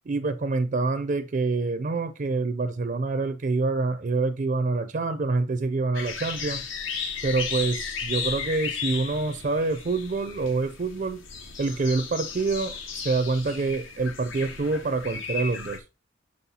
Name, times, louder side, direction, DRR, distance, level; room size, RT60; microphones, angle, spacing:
voice 1, 0.1-6.6 7.2-11.2 11.6-15.8, right 3 dB, 40° right, 0.4 m, -26 dB
sound 1, 5.9-15.8, left 6 dB, 70° left, 0.9 m, -35 dB
6.4 x 5.5 x 2.8 m
head